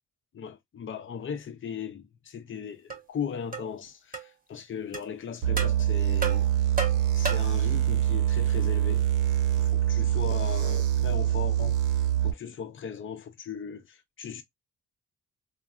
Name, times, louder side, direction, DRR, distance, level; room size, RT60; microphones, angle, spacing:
voice 1, 0.3-6.5 7.1-9.1 9.6-11.8 12.2-14.4, left 7 dB, 40° left, 0.7 m, -38 dB
sound 1, 2.9-3.0 3.5-3.7 4.1-4.3 4.9-5.1 5.6-5.8 6.2-7.6, right 4 dB, 30° right, 1.1 m, -33 dB
sound 2, 5.4-12.3, right 11 dB, 80° right, 0.7 m, -25 dB
3.3 x 2.2 x 2.5 m
cardioid pair, 90°, 30 cm